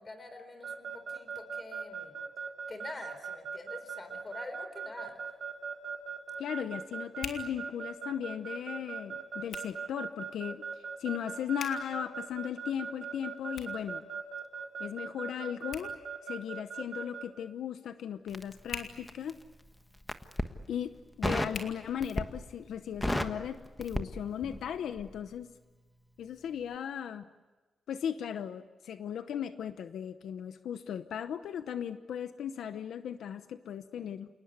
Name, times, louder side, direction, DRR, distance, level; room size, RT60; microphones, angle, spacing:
voice 1, 0.0-2.2 2.7-5.2, left 2 dB, 25° left, 9 dB, 4.2 m, -46 dB
Keyboard (musical) / Alarm, 0.6-17.2, right 6 dB, 70° right, 3.7 m, -39 dB
Hands, 4.9-22.6, left 6 dB, 70° left, 3.0 m, -50 dB
voice 2, 6.4-14.1 14.8-15.9 16.2-19.3 20.7-25.5 26.2-27.3 27.9-34.3, left 9 dB, 85° left, 10 dB, 0.9 m, -37 dB
Crackle, 18.3-19.4 20.0-20.5 21.2-21.6 22.0-22.5 22.8-24.7 25.0-25.2, left 1 dB, 10° left, 1.4 m, -33 dB
28.5 x 19.0 x 9.6 m, 1.3 s
wide cardioid pair, 125°, 0 cm